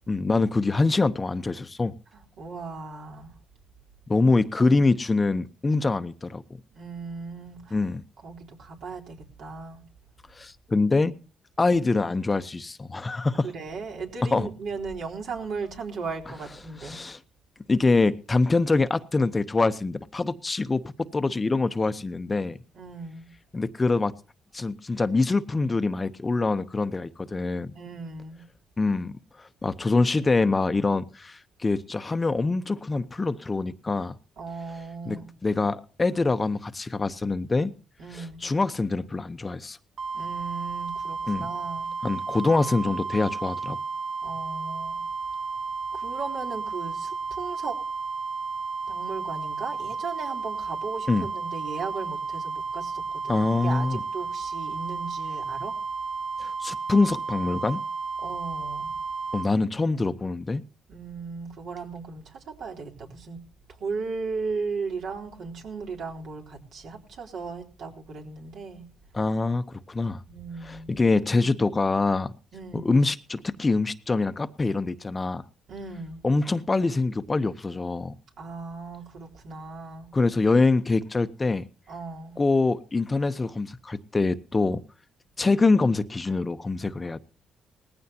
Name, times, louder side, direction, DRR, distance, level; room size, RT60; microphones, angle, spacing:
voice 1, 0.1-1.9 4.1-6.4 7.7-8.0 10.3-11.2 11.6-13.5 14.3-14.5 16.8-17.2 17.7-22.6 23.5-24.1 24.5-27.7 28.8-34.2 35.1-37.7 38.1-39.8 41.3-41.5 42.0-43.8 51.1-51.3 53.3-54.0 56.4-57.8 59.3-60.6 69.1-70.2 70.7-72.3 72.7-75.4 76.2-78.1 80.1-81.6 82.4-84.8 85.4-87.2, left 3 dB, 25° left, 0.9 m, -24 dB
voice 2, 2.1-3.3 4.6-4.7 6.7-7.8 8.2-9.8 13.4-17.0 22.7-23.3 27.7-28.4 34.4-35.3 38.0-38.5 40.1-41.9 44.2-45.0 45.9-47.8 48.9-55.8 58.2-59.0 60.9-63.4 63.8-68.9 70.3-71.0 72.5-72.9 75.7-76.3 78.4-80.1 81.9-82.4, right 4 dB, 70° right, 3.8 m, -37 dB
sound 1, 40.0-59.5, right 4 dB, 55° right, 0.9 m, -33 dB
19.0 x 15.0 x 2.9 m
cardioid pair, 90°, 0 cm